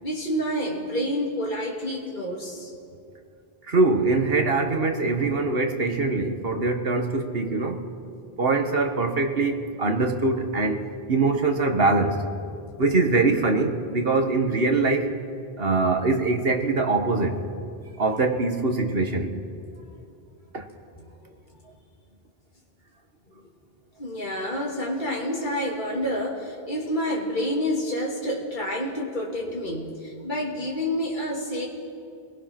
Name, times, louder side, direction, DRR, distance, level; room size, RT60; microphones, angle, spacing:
voice 1, 0.0-2.7 21.0-21.4 24.0-31.7, equal, 50° left, -3 dB, 2.9 m, -28 dB
voice 2, 3.7-7.8 8.4-12.2 12.8-15.1 15.6-17.4 18.0-19.3 20.5-20.7, right 3 dB, 70° right, 5 dB, 1.8 m, -23 dB
28.5 x 20.0 x 6.0 m, 2.5 s
omnidirectional pair, 1.0 m